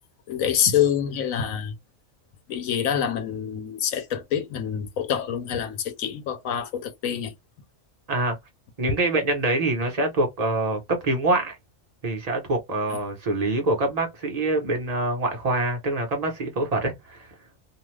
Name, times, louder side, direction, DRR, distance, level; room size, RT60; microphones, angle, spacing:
voice 1, 0.3-1.7 2.5-7.3 12.9-13.0, left 9 dB, 80° left, 1.1 m, -26 dB
voice 2, 8.8-11.6 12.0-17.3, right 2 dB, 30° right, 1.0 m, -25 dB
2.8 x 2.3 x 3.1 m
omnidirectional pair, 1.4 m